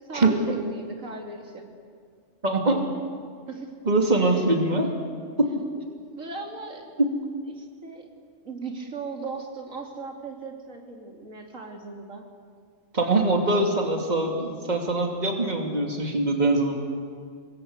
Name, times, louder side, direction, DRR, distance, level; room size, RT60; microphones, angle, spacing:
voice 1, 0.1-1.7 3.5-3.8 4.3-4.4 6.1-6.9 7.5-8.1 8.4-12.3, right 4 dB, 85° right, 2 dB, 3.2 m, -38 dB
voice 2, 2.4-2.8 3.9-4.9 5.4-5.5 7.0-7.1 12.9-16.7, right 2 dB, 35° right, 2 dB, 2.7 m, -23 dB
26.0 x 21.0 x 8.2 m, 2.1 s
omnidirectional pair, 1.3 m